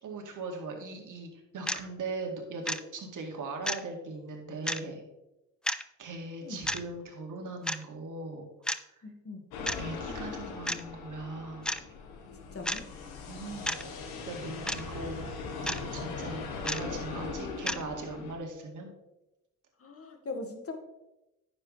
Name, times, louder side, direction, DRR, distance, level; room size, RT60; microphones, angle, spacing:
voice 1, 0.0-5.0 6.0-8.5 9.8-11.6 13.3-13.8 14.3-15.3 15.6-18.9, right 3 dB, 55° right, 2 dB, 2.3 m, -39 dB
sound 1, 1.7-1.8 2.7-2.8 3.7-3.8 4.7-4.8 5.7-5.8 6.7-6.8 7.7-7.8 8.7-8.8 9.7-9.8 10.7-10.8 11.7-11.8 12.7-12.8 13.7-13.8 14.7-14.8 15.7-15.8 16.7-16.8 17.7-17.8, left 1 dB, ahead, 0.4 m, -31 dB
voice 2, 6.4-6.7 9.0-9.5 12.5-12.8 19.8-20.7, left 3 dB, 40° left, 5 dB, 1.7 m, -40 dB
sound 2, 9.5-18.4, left 4 dB, 85° left, 1.5 m, -40 dB
9.6 x 7.2 x 3.2 m, 0.93 s
supercardioid pair, 60°, 37 cm